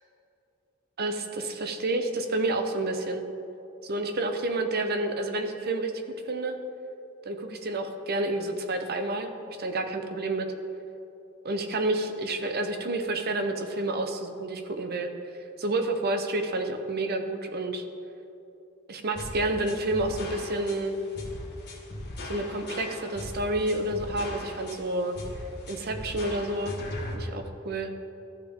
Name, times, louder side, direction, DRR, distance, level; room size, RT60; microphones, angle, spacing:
voice 1, 1.0-3.2 3.8-5.9 6.3-6.6 7.3-10.5 11.4-15.1 15.6-17.8 18.9-21.0 22.3-25.2 25.7-26.8 27.1-27.9, right 2 dB, 50° right, 7 dB, 0.7 m, -29 dB
sound 1, 19.1-27.1, left 1 dB, 50° left, 1.4 m, -39 dB
13.5 x 6.1 x 3.6 m, 2.8 s
head